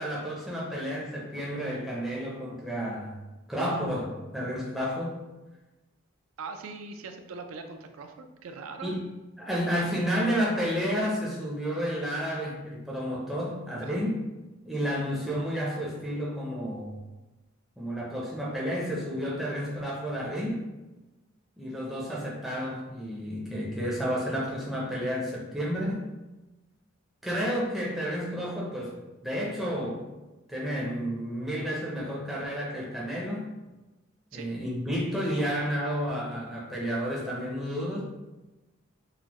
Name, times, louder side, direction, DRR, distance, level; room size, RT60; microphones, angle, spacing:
voice 1, 0.0-3.2 3.5-5.2 8.8-9.0 9.4-14.2 14.6-17.0 17.8-20.6 21.6-26.0 27.2-29.0 29.2-30.0 30.5-33.5 34.3-38.0, equal, ahead, -5 dB, 0.5 m, -31 dB
voice 2, 6.4-9.0 13.8-14.0 34.3-34.5, right 4 dB, 80° right, 6 dB, 0.4 m, -41 dB
3.9 x 2.1 x 2.9 m, 1.1 s
head